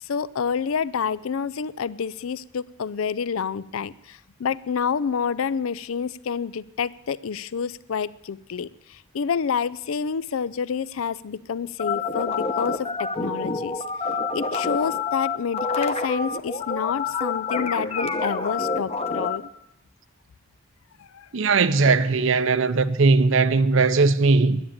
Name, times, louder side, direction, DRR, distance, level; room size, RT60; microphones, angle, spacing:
voice 1, 0.0-13.8 14.3-19.5 21.0-21.3, left 6 dB, 70° left, 0.4 m, -28 dB
sound 1, 11.8-19.4, left 4 dB, 30° left, 0.9 m, -27 dB
voice 2, 21.3-24.6, right 4 dB, 60° right, 0.6 m, -19 dB
10.0 x 10.0 x 8.7 m
head